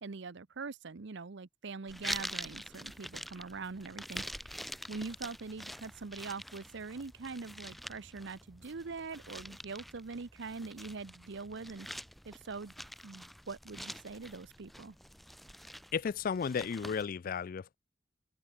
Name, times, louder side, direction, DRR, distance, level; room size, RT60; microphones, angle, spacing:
voice 1, 0.0-4.2 4.9-11.9 12.3-12.7 13.0-15.0, right 4 dB, 60° right, 0.7 m, -43 dB
sound 1, 1.9-17.1, equal, ahead, 0.7 m, -46 dB
voice 2, 15.9-17.7, left 6 dB, 45° left, 0.3 m, -34 dB
open air
head